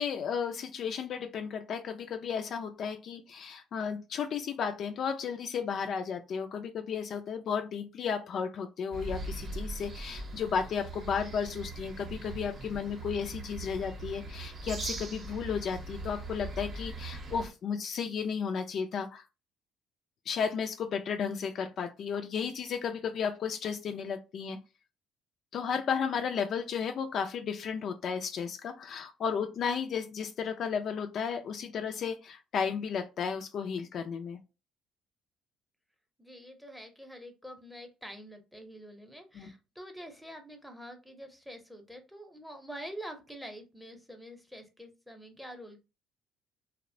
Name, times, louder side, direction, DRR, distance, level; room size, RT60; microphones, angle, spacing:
voice 1, 0.0-19.2 20.3-24.6 25.5-34.4 39.4-39.5, left 6 dB, 55° left, 6 dB, 0.3 m, -33 dB
sound 1, 8.9-17.5, right 2 dB, 40° right, 0.7 m, -40 dB
voice 2, 36.2-45.9, equal, ahead, 5 dB, 0.6 m, -46 dB
2.8 x 2.0 x 2.5 m, 0.28 s
cardioid pair, 100°, 0 cm